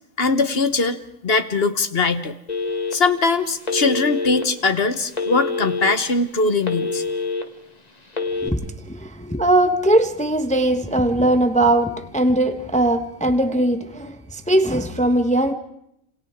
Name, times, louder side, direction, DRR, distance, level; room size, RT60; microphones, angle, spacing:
voice 1, 0.2-1.0 1.2-2.3 2.9-7.0, left 4 dB, 50° left, 1.4 m, -21 dB
Telephone, 2.5-3.2 3.6-4.4 5.1-5.9 6.4-7.4 8.1-8.5, left 4 dB, 30° left, 1.7 m, -25 dB
voice 2, 8.9-15.5, right 1 dB, 5° left, 1.0 m, -20 dB
29.5 x 27.5 x 3.7 m
omnidirectional pair, 1.4 m